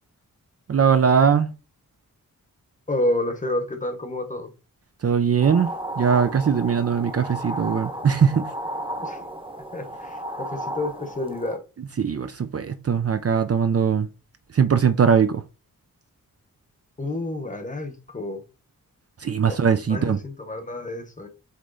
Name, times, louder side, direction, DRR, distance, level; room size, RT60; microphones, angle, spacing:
voice 1, 0.7-1.5 5.0-5.7 6.0-8.5 12.0-14.1 14.5-15.4 19.2-20.2, right 6 dB, 45° right, 0.5 m, -20 dB
voice 2, 2.9-4.5 9.0-9.2 9.7-11.6 17.0-18.4 19.2-19.6 19.9-21.3, left 1 dB, 20° left, 1.0 m, -29 dB
sound 1, 5.4-11.6, right 1 dB, 15° right, 0.9 m, -34 dB
8.1 x 3.2 x 3.9 m
wide cardioid pair, 175°, 35 cm